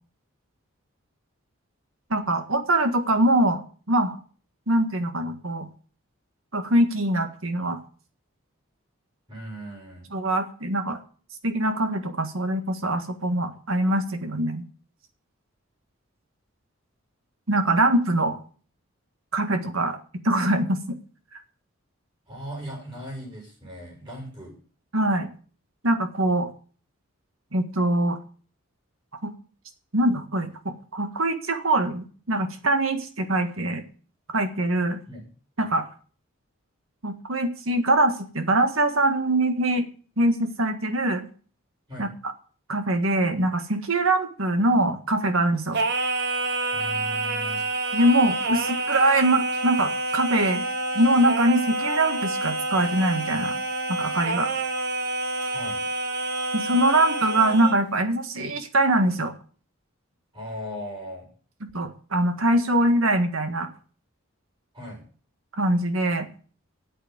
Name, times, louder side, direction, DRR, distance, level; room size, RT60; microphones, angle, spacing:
voice 1, 2.1-3.6 3.9-4.2 4.7-5.7 6.5-7.8 10.1-11.0 11.4-14.6 17.5-18.4 19.3-20.0 20.2-21.0 24.9-25.3 25.8-26.5 27.5-28.2 29.2-29.3 29.9-33.9 34.3-35.0 35.6-35.9 37.0-39.9 40.2-41.3 42.0-42.1 42.7-45.8 47.9-50.6 50.9-53.5 53.9-54.5 56.5-59.3 61.6-63.7 65.6-66.3, right 1 dB, 75° right, 7 dB, 1.8 m, -23 dB
voice 2, 9.3-10.1 22.3-24.5 35.1-35.3 41.9-42.1 46.7-47.6 55.5-55.8 60.3-61.3 64.7-65.0, equal, 20° right, 0 dB, 6.1 m, -38 dB
Singing, 45.7-57.8, right 2 dB, 50° right, 1.2 m, -28 dB
8.9 x 8.1 x 9.3 m, 0.42 s
head